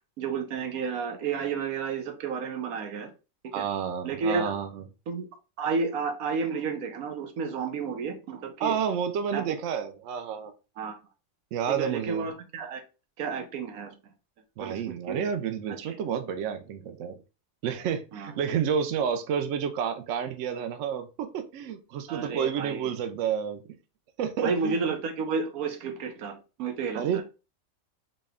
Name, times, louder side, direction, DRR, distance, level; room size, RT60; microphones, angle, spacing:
voice 1, 0.2-3.1 3.6-3.7 4.0-4.5 5.1-5.3 5.6-8.7 9.3-9.4 10.8-11.0 11.7-12.8 13.2-13.9 14.6-14.8 15.1-15.2 18.1-18.3 22.1-22.9 24.4-27.2, right 5 dB, 85° right, 5 dB, 1.2 m, -31 dB
voice 2, 3.5-4.8 8.6-10.5 11.5-12.3 14.6-17.2 17.6-23.6 24.2-24.8 26.9-27.2, right 7 dB, 70° right, 9 dB, 0.8 m, -30 dB
4.1 x 2.2 x 3.5 m, 0.31 s
omnidirectional pair, 1.5 m